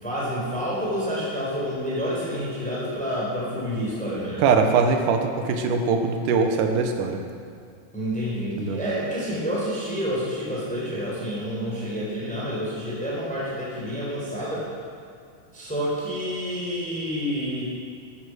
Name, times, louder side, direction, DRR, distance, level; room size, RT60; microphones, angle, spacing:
voice 1, 0.0-4.4 7.9-14.7 15.5-17.6, equal, ahead, -7 dB, 3.9 m, -28 dB
voice 2, 4.4-7.2 8.6-8.8, right 5 dB, 65° right, 4 dB, 2.5 m, -22 dB
14.5 x 11.0 x 6.3 m, 2.3 s
omnidirectional pair, 4.3 m